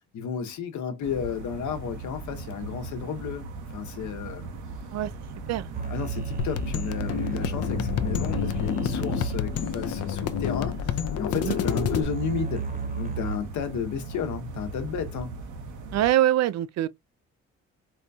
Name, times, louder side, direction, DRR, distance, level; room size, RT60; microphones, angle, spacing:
voice 1, 0.1-3.5 3.7-4.5 5.9-12.7 12.9-15.4, left 7 dB, 70° left, 1.0 m, -32 dB
sound 1, 1.0-16.1, right 4 dB, 80° right, 1.0 m, -39 dB
sound 2, 5.7-13.4, right 6 dB, 30° right, 1.0 m, -35 dB
sound 3, 6.4-12.0, left 10 dB, 55° left, 0.5 m, -29 dB
voice 2, 15.9-16.9, right 13 dB, 60° right, 0.4 m, -24 dB
4.4 x 2.2 x 2.6 m
cardioid pair, 90°, 30 cm